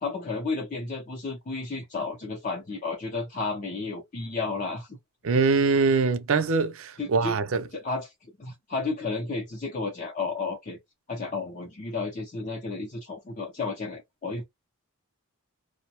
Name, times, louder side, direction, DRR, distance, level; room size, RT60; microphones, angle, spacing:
voice 1, 0.0-5.0 7.0-7.4 7.7-8.1 8.4-10.8 11.1-14.4, left 3 dB, 35° left, 0.6 m, -32 dB
voice 2, 5.2-7.6, right 4 dB, 60° right, 0.5 m, -23 dB
2.6 x 2.1 x 2.9 m
head